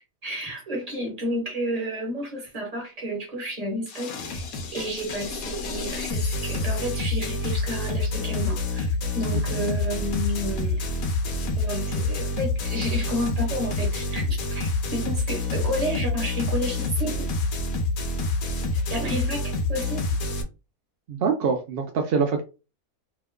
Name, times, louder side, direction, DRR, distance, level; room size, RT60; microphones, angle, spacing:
voice 1, 0.0-10.9 11.6-17.3 18.9-20.0, equal, 30° right, 1.1 m, -31 dB
sound 1, 3.9-20.4, left 2 dB, 70° left, 1.2 m, -27 dB
voice 2, 9.3-9.7 21.1-22.4, right 5 dB, 70° right, 0.5 m, -25 dB
3.0 x 2.1 x 3.5 m
omnidirectional pair, 1.6 m